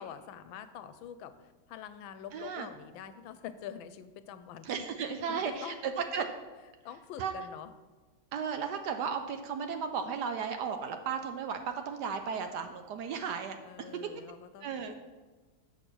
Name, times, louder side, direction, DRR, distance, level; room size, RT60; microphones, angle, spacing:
voice 1, 0.0-1.3 1.7-4.9 5.3-5.8 6.8-7.7 13.6-14.9, left 9 dB, 80° left, 12 dB, 1.3 m, -45 dB
voice 2, 2.3-2.7 4.6-6.3 7.2-7.3 8.3-13.6 14.6-14.9, right 6 dB, 70° right, 7 dB, 1.1 m, -35 dB
6.6 x 6.2 x 6.0 m, 1.3 s
omnidirectional pair, 2.1 m